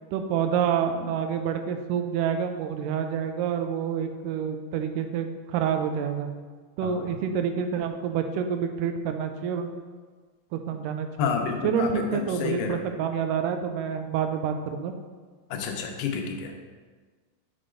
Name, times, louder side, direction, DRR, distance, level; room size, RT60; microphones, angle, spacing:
voice 1, 0.1-6.3 6.8-9.7 10.5-11.3 11.6-14.9, right 7 dB, 80° right, 7 dB, 2.0 m, -28 dB
voice 2, 6.8-7.2 11.2-12.8 15.5-16.6, left 6 dB, 80° left, 3 dB, 2.3 m, -30 dB
6.7 x 3.9 x 5.0 m, 1.5 s
omnidirectional pair, 4.1 m